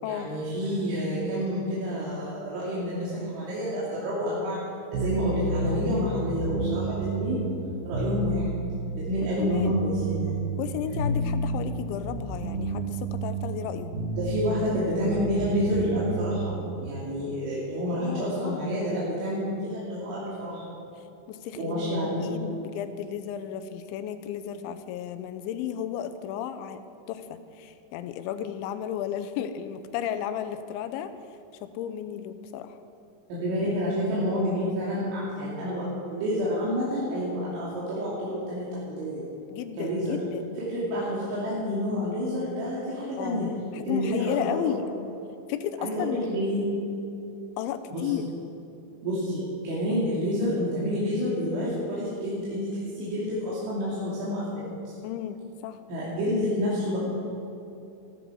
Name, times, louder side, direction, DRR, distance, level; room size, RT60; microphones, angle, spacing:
voice 1, 0.0-4.6 4.9-7.4 7.8-8.5 8.9-10.4 14.2-16.4 16.8-20.6 21.6-22.3 33.3-39.2 39.8-40.2 40.7-43.5 43.9-44.8 45.8-46.6 47.9-48.0 49.0-54.6 55.9-57.0, equal, 90° right, -8 dB, 4.9 m, -29 dB
sound 1, 4.9-16.8, right 2 dB, 60° right, 3.0 m, -31 dB
voice 2, 9.4-9.8 10.6-13.9 17.9-18.7 21.3-21.9 22.2-26.8 27.1-31.1 31.6-32.8 39.5-40.5 43.2-44.8 45.5-46.2 47.6-48.2 55.0-55.8, left 10 dB, 85° left, 10 dB, 3.1 m, -33 dB
15.0 x 14.0 x 4.7 m, 2.7 s
omnidirectional pair, 5.3 m